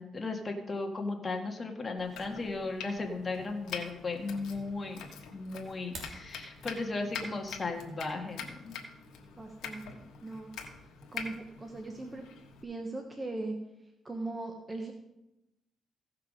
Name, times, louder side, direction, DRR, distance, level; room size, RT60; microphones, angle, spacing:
voice 1, 0.0-5.0 5.3-8.7, left 3 dB, 30° left, 3 dB, 1.8 m, -36 dB
Domestic sounds home sounds, 2.0-12.6, left 6 dB, 80° left, 1.4 m, -45 dB
sound 1, 5.7-6.2, right 2 dB, 55° right, 2.9 m, -45 dB
voice 2, 9.4-10.5 11.1-12.3 12.6-13.5 14.0-14.9, right 2 dB, 20° right, 3 dB, 1.2 m, -39 dB
15.5 x 5.8 x 5.2 m, 0.93 s
cardioid pair, 90°, 0 cm